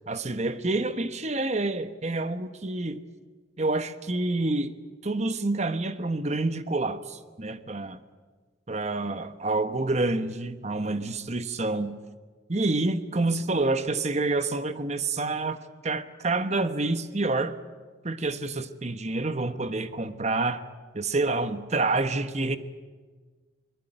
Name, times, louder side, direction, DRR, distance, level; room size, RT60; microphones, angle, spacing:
voice 1, 0.1-3.0 3.6-4.7 5.0-8.0 8.7-11.9 12.5-17.6 18.0-20.6 20.9-22.6, right 2 dB, 35° right, 11 dB, 1.2 m, -28 dB
25.5 x 20.0 x 9.1 m, 1.4 s
head